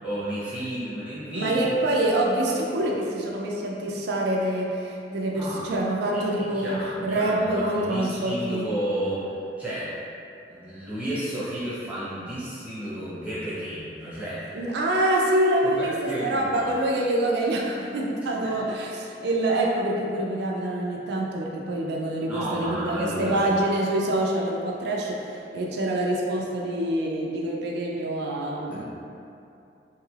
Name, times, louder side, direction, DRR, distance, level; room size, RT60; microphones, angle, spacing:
voice 1, 0.0-1.6 5.4-5.7 6.1-9.3 9.6-9.9 10.5-14.6 15.6-16.7 18.4-18.6 22.3-23.5 28.7-28.9, right 1 dB, 10° right, -11 dB, 1.0 m, -32 dB
voice 2, 1.3-6.8 7.0-8.7 14.5-28.9, right 1 dB, 65° right, -2 dB, 0.4 m, -26 dB
3.0 x 2.3 x 3.2 m, 2.7 s
head